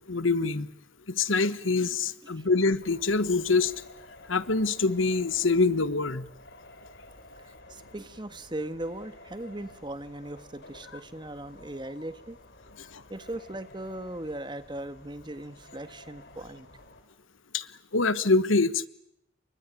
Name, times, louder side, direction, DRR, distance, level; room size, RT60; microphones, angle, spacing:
voice 1, 0.1-0.7 1.1-3.7 4.3-6.3 17.5-17.7 17.9-18.9, left 3 dB, 90° left, 16 dB, 1.3 m, -25 dB
sound 1, 2.8-17.0, left 1 dB, 60° left, 3.7 m, -52 dB
voice 2, 7.4-12.4 13.1-16.7, right 1 dB, 25° right, 12 dB, 1.6 m, -38 dB
30.0 x 24.0 x 8.4 m, 0.81 s
head